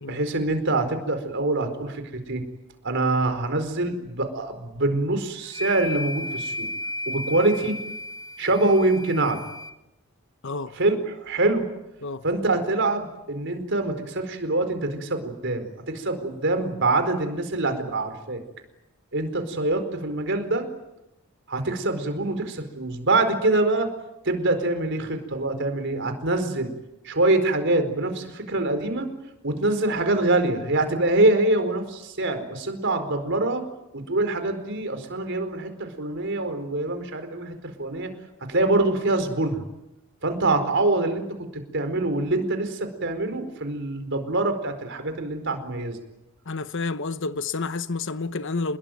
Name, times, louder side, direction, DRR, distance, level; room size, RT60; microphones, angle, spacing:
voice 1, 0.1-2.4 2.8-6.7 7.1-7.8 8.4-9.4 10.8-11.7 12.2-18.4 19.1-20.6 21.5-23.9 24.2-26.7 27.0-29.1 29.4-33.6 33.9-38.1 38.5-39.7 40.2-41.5 41.7-46.0, right 2 dB, 55° right, 4.6 m, -24 dB
sound 1, 5.5-9.7, left 1 dB, 20° left, 1.3 m, -34 dB
voice 2, 10.4-10.8 12.0-12.2 46.5-48.8, left 3 dB, 60° left, 1.0 m, -29 dB
28.0 x 21.0 x 9.2 m
head